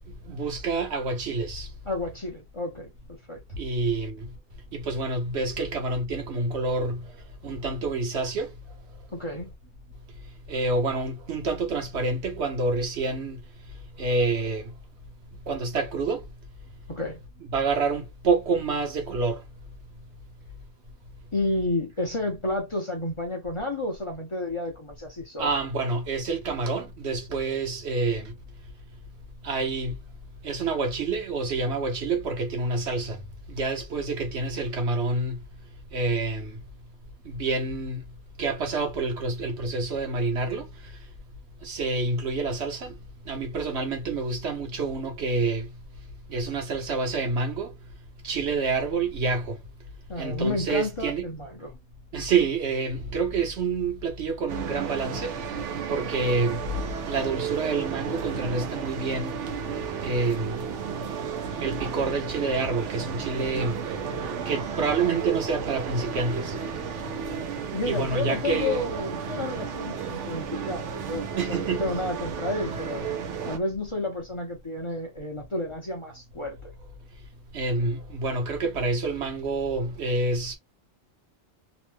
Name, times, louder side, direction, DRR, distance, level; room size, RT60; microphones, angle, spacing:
voice 1, 0.1-1.7 3.5-4.3 4.7-7.2 7.4-8.5 10.5-13.4 14.0-14.7 15.5-16.3 17.5-19.4 25.4-28.3 29.4-30.0 30.4-33.2 33.5-35.4 35.9-36.6 37.2-38.0 38.4-41.0 41.6-43.0 43.2-45.7 46.3-47.8 48.2-49.6 50.2-51.3 52.1-59.4 60.0-60.6 61.6-63.8 64.4-66.6 67.8-68.8 71.4-71.9 77.5-80.6, right 3 dB, 70° right, 1.1 m, -28 dB
voice 2, 1.9-3.4 9.1-9.5 16.9-17.2 21.3-25.5 50.1-51.7 67.7-73.1 73.4-76.7, left 2 dB, 35° left, 0.6 m, -31 dB
sound 1, 54.5-73.6, right 6 dB, 90° right, 1.0 m, -33 dB
2.9 x 2.1 x 3.2 m
omnidirectional pair, 1.2 m